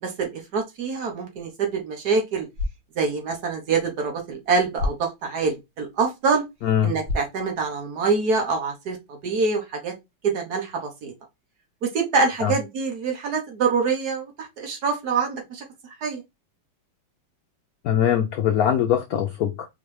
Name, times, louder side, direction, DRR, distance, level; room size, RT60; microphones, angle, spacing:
voice 1, 0.0-2.5 3.0-6.4 6.8-9.9 10.2-11.1 11.8-15.6 16.0-16.2, right 4 dB, 55° right, 1.4 m, -25 dB
sound 1, 2.4-8.4, left 2 dB, 75° right, 2.1 m, -36 dB
voice 2, 6.6-6.9 12.4-12.5 17.8-19.7, left 9 dB, 90° left, 0.8 m, -22 dB
4.3 x 3.2 x 3.2 m
omnidirectional pair, 2.2 m